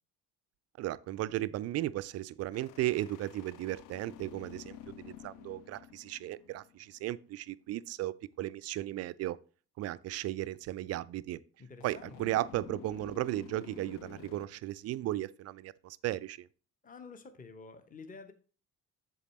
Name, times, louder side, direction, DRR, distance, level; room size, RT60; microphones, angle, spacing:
voice 1, 0.8-9.4 9.8-11.4 11.8-16.5, right 15 dB, 35° right, 0.4 m, -35 dB
sound 1, 2.5-7.1 11.8-14.5, left 13 dB, 45° left, 0.5 m, -51 dB
voice 2, 11.6-12.3 16.8-18.3, left 4 dB, 15° left, 1.0 m, -49 dB
8.2 x 7.2 x 3.2 m
figure-of-eight pair, 45°, 47 cm